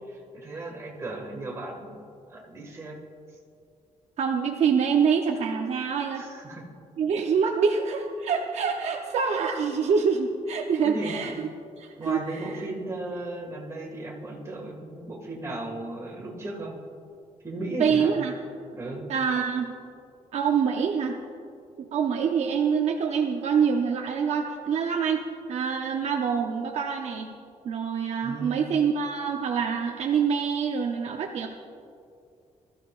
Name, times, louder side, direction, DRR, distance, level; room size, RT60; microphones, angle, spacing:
voice 1, 0.1-1.9 2.3-3.0 6.2-6.6 10.8-11.3 12.0-16.8 17.4-18.2 18.7-19.1 28.2-28.6, right 2 dB, 20° right, -1 dB, 1.9 m, -36 dB
voice 2, 4.2-6.2 7.0-11.5 11.8-12.5 17.8-18.3 19.1-19.7 20.3-21.2 21.8-25.2 25.5-27.3 27.6-31.5, right 6 dB, 60° right, 3 dB, 0.7 m, -25 dB
21.5 x 13.5 x 2.5 m, 2.5 s
wide cardioid pair, 175°, 13 cm